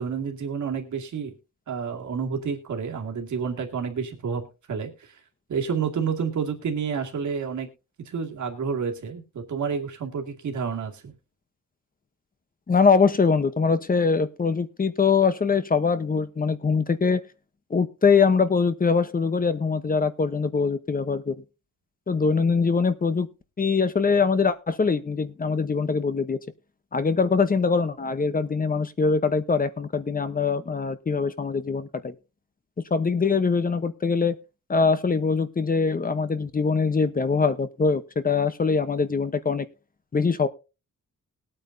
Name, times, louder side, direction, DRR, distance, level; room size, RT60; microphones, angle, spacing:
voice 1, 0.0-1.3 1.7-5.1 5.5-7.7 8.1-11.1, right 6 dB, 60° right, 3 dB, 2.2 m, -29 dB
voice 2, 12.7-17.2 17.7-21.3 22.1-23.3 23.6-26.4 26.9-32.1 32.9-34.4 34.7-39.7 40.1-40.5, left 5 dB, 25° left, 12 dB, 0.8 m, -23 dB
20.5 x 8.8 x 2.6 m, 0.30 s
wide cardioid pair, 150°, 32 cm